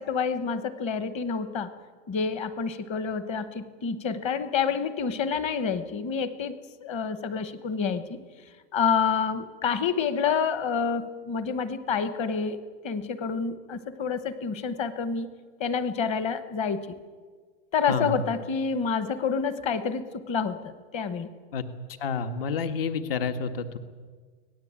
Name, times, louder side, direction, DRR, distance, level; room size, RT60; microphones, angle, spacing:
voice 1, 0.0-1.7 2.1-8.2 8.7-15.3 15.6-16.9 17.7-21.3, left 6 dB, 20° left, 13 dB, 1.0 m, -28 dB
voice 2, 22.0-23.8, left 5 dB, 60° left, 9 dB, 1.9 m, -29 dB
24.5 x 18.5 x 8.8 m, 1.5 s
supercardioid pair, 175°, 32 cm